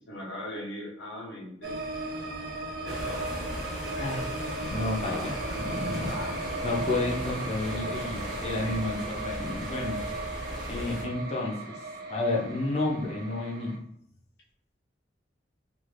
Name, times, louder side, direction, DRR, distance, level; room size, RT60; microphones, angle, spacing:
voice 1, 0.1-1.8 2.8-3.3 3.8-4.3 5.1-5.3 6.1-6.3 8.5-8.9, left 1 dB, 85° left, -4 dB, 0.9 m, -40 dB
sound 1, 1.6-13.8, right 2 dB, 55° right, 0.5 m, -36 dB
sound 2, 2.9-11.0, equal, ahead, 0.8 m, -37 dB
voice 2, 4.7-5.3 5.6-6.1 6.6-10.0 10.7-11.8 12.1-13.7, left 2 dB, 35° left, -3 dB, 0.5 m, -31 dB
2.5 x 2.4 x 3.2 m, 0.69 s
head